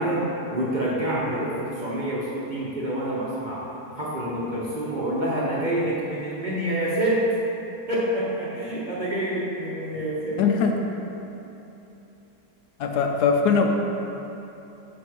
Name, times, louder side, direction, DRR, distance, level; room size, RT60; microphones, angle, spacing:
voice 1, 0.0-3.6 4.0-7.3 7.9-10.4, right 1 dB, 35° right, -7 dB, 0.9 m, -27 dB
voice 2, 10.4-10.7 12.8-13.7, left 5 dB, 80° left, 3 dB, 1.2 m, -21 dB
7.3 x 4.2 x 4.5 m, 3.0 s
omnidirectional pair, 1.7 m